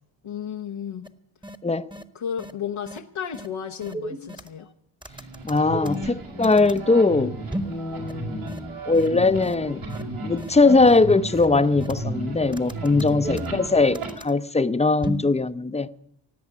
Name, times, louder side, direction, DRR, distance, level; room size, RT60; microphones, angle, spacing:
voice 1, 0.2-1.1 2.1-4.7 13.1-13.4, left 8 dB, 80° left, 1.1 m, -33 dB
sound 1, 1.0-1.1 1.4-1.6 1.9-2.0 2.4-2.5 2.9-3.0 3.3-3.5 3.8-4.6 5.0-6.8 7.5-7.8 8.1-8.2 8.5-8.6 8.9-9.1 9.4-9.5 9.9-10.0 10.4-10.5 10.9-11.0 11.3-12.2 12.5-14.3 15.0-15.3, right 1 dB, 10° right, 1.2 m, -34 dB
sound 2, 5.1-14.1, right 1 dB, 80° right, 5.1 m, -34 dB
voice 2, 5.4-7.4 7.6-9.8 10.2-15.9, left 3 dB, 15° left, 0.7 m, -20 dB
18.0 x 7.9 x 9.7 m
cardioid pair, 75°, 48 cm